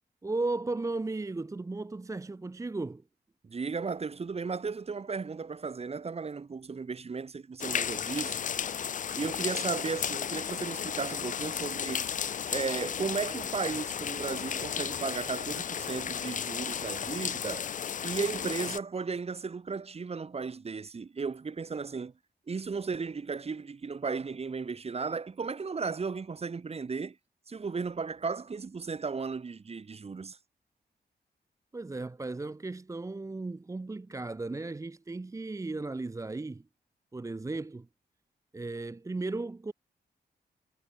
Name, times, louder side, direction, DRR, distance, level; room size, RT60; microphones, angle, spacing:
voice 1, 0.2-3.0 31.7-36.7 37.1-37.9 38.5-39.7, right 3 dB, 20° right, 0.8 m, -35 dB
voice 2, 3.4-8.4 8.7-12.1 12.5-17.7 18.0-22.1 22.5-27.2 27.5-30.4, right 5 dB, 35° right, 1.9 m, -35 dB
sound 1, 7.6-18.8, left 8 dB, 50° left, 0.5 m, -34 dB
wide cardioid pair, 145°, 17 cm